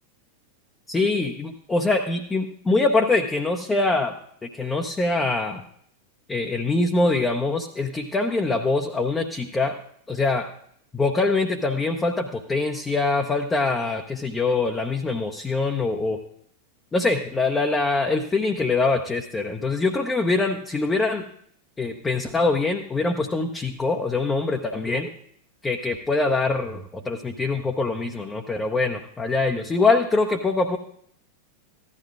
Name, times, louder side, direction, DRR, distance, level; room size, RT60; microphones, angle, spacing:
voice 1, 0.9-4.2 4.4-5.6 6.3-9.8 10.1-10.5 10.9-16.2 16.9-21.2 21.8-25.1 25.6-30.8, left 3 dB, 15° left, 3 dB, 0.8 m, -24 dB
15.5 x 12.0 x 2.5 m, 0.66 s
figure-of-eight pair, 90°, 0 cm